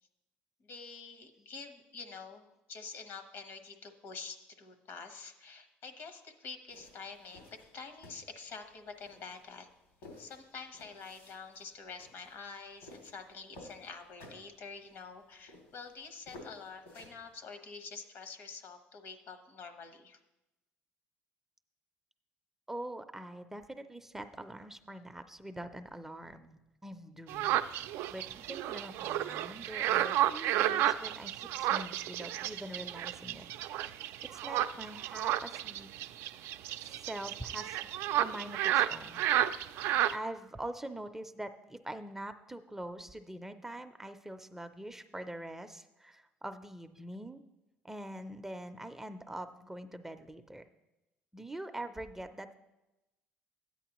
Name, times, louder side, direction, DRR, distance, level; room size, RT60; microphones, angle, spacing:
voice 1, 0.6-9.7 10.2-20.2, left 4 dB, 65° left, 8 dB, 1.1 m, -47 dB
sound 1, 6.7-17.3, left 2 dB, 85° left, 2.7 m, -55 dB
voice 2, 22.7-27.6 28.1-33.5 34.3-35.9 36.8-37.8 38.2-39.2 40.1-47.4 47.8-50.6 51.3-52.5, right 1 dB, 10° right, 8 dB, 0.5 m, -44 dB
sound 2, 27.3-40.2, right 13 dB, 75° right, 0.3 m, -32 dB
13.0 x 9.2 x 3.0 m, 0.98 s
cardioid pair, 100°, 4 cm